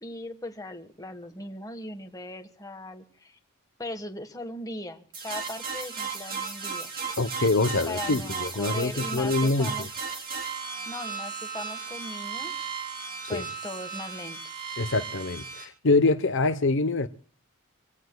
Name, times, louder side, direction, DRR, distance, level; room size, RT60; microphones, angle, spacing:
voice 1, 0.0-3.4 3.8-6.9 7.9-9.9 10.8-12.7 13.3-14.4, left 1 dB, 15° left, 1.5 m, -39 dB
sound 1, 5.1-15.6, right 5 dB, 40° right, 3.7 m, -35 dB
voice 2, 7.2-9.9 13.3-13.4 14.8-17.1, left 3 dB, 60° left, 0.9 m, -25 dB
27.0 x 17.5 x 2.3 m
head